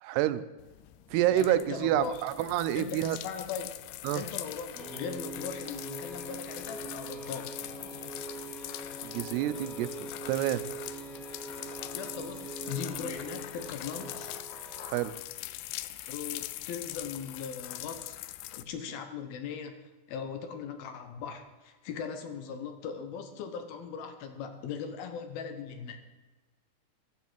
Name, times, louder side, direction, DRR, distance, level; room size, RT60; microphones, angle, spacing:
voice 1, 0.0-0.4 1.1-3.2 4.0-4.2 9.0-10.6 14.8-15.1, right 13 dB, 90° right, 13 dB, 2.8 m, -28 dB
sound 1, 0.6-18.6, left 15 dB, 85° left, 2.6 m, -42 dB
voice 2, 1.3-2.2 2.8-3.7 4.1-7.6 11.9-14.3 16.1-18.2 18.5-26.0, left 6 dB, 70° left, 8 dB, 3.0 m, -39 dB
sound 2, 4.7-14.9, right 3 dB, ahead, 1.9 m, -43 dB
14.0 x 12.5 x 4.6 m, 1.2 s
omnidirectional pair, 4.6 m